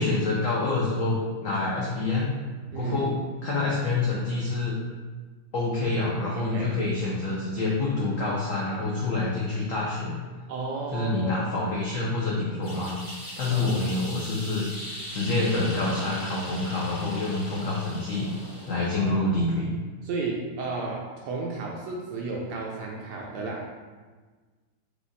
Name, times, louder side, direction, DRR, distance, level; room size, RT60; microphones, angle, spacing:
voice 1, 0.0-2.4 2.7-4.8 5.5-10.2 10.9-13.0 13.4-14.6 15.1-18.3 18.7-19.7, left 2 dB, 80° left, -4 dB, 0.7 m, -27 dB
voice 2, 2.7-3.1 6.4-6.7 10.5-11.5 13.5-13.8 19.0-19.3 20.0-23.7, right 3 dB, 75° right, -1 dB, 1.0 m, -33 dB
sound 1, 12.6-19.0, left 1 dB, 20° left, 0.5 m, -40 dB
4.9 x 2.4 x 3.9 m, 1.4 s
omnidirectional pair, 2.2 m